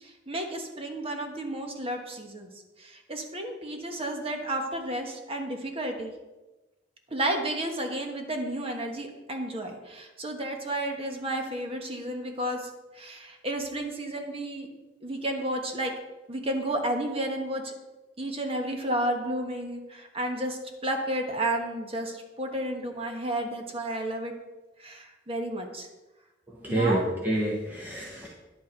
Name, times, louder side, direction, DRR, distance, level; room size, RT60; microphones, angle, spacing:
voice 1, 0.0-2.5 2.8-6.1 7.1-12.7 12.9-14.7 15.0-15.9 16.3-17.7 18.2-24.3 24.8-25.9 26.7-27.0, right 1 dB, 30° right, 3 dB, 1.3 m, -32 dB
voice 2, 26.5-28.3, right 1 dB, 10° right, -3 dB, 1.2 m, -28 dB
10.5 x 8.4 x 4.5 m, 1.1 s
head